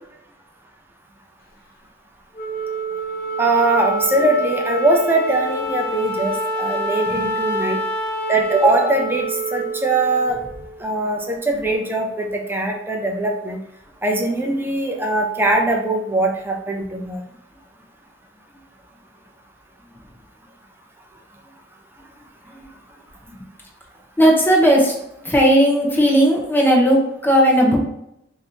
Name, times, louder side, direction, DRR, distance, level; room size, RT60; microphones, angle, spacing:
Wind instrument woodwind instrument, 2.4-10.9, right 1 dB, 55° left, 0.6 m, -26 dB
voice 1, 3.4-6.3 6.6-7.8 8.3-10.4 10.8-13.6 14.0-17.2, right 2 dB, 10° right, 1 dB, 0.6 m, -21 dB
voice 2, 24.2-27.8, equal, 10° left, -2 dB, 1.0 m, -16 dB
5.2 x 2.7 x 2.9 m, 0.80 s
head